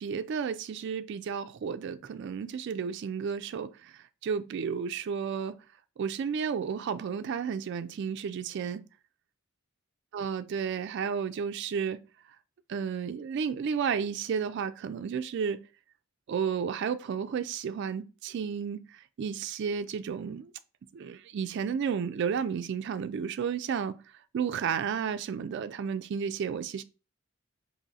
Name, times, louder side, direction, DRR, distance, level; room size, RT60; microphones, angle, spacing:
voice 1, 0.0-5.6 6.0-8.8 10.1-12.0 12.7-15.6 16.3-20.5 20.9-24.0 24.3-26.8, right 6 dB, 55° right, 0.3 m, -32 dB
5.0 x 2.6 x 2.7 m
head